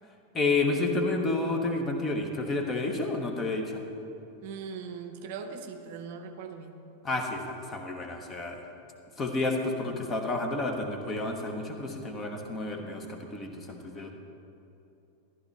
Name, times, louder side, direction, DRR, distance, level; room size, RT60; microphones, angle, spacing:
voice 1, 0.3-3.8 7.0-8.6 9.2-14.1, left 2 dB, 20° left, 4 dB, 1.2 m, -30 dB
voice 2, 4.4-6.8, right 5 dB, 50° right, 7 dB, 0.7 m, -40 dB
14.0 x 11.0 x 3.3 m, 2.8 s
figure-of-eight pair, 90°, 0 cm